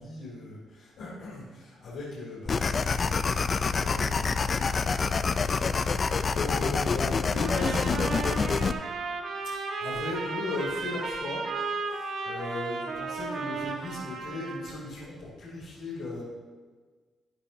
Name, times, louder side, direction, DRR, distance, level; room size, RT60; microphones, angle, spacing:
voice 1, 0.0-8.7 9.5-11.4 11.8-16.2, left 2 dB, 80° left, -8 dB, 3.4 m, -38 dB
sound 1, 2.5-8.7, left 5 dB, 40° left, 0.5 m, -27 dB
Trumpet, 7.4-14.8, right 4 dB, 60° right, 1.4 m, -34 dB
13.0 x 9.9 x 2.8 m, 1.4 s
cardioid pair, 90°, 0 cm